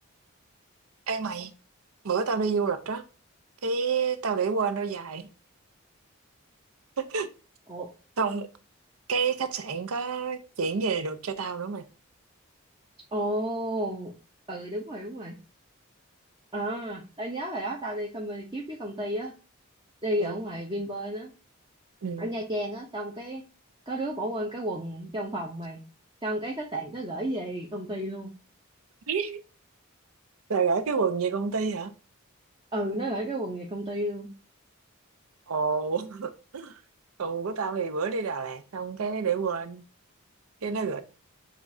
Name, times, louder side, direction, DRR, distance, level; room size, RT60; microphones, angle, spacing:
voice 1, 1.1-1.5 2.0-3.0 3.6-5.3 7.0-7.3 8.2-8.5 9.1-11.8 20.2-20.4 22.0-22.3 29.1-29.4 30.5-31.9 35.5-36.7 37.2-39.8 40.6-41.0, right 5 dB, 85° right, 0.6 m, -28 dB
voice 2, 13.1-14.1 14.5-15.3 16.5-19.3 20.0-21.3 22.2-23.4 23.9-25.8 26.2-28.3 32.7-34.3, right 1 dB, 20° right, 0.6 m, -32 dB
6.6 x 2.4 x 2.6 m
head